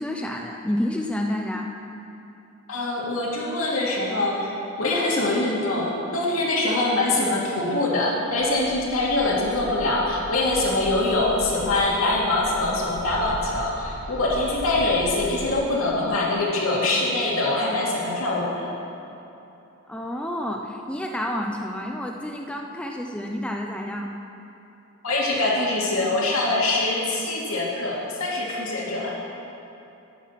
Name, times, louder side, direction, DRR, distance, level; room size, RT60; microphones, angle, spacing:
voice 1, 0.0-1.7 7.2-7.4 19.9-24.1, left 1 dB, 5° left, 1 dB, 0.5 m, -29 dB
voice 2, 2.7-18.7 25.0-29.1, left 2 dB, 80° left, -4 dB, 2.6 m, -24 dB
Bird, 8.4-15.7, equal, 40° right, 1.1 m, -39 dB
10.5 x 10.0 x 5.9 m, 2.9 s
head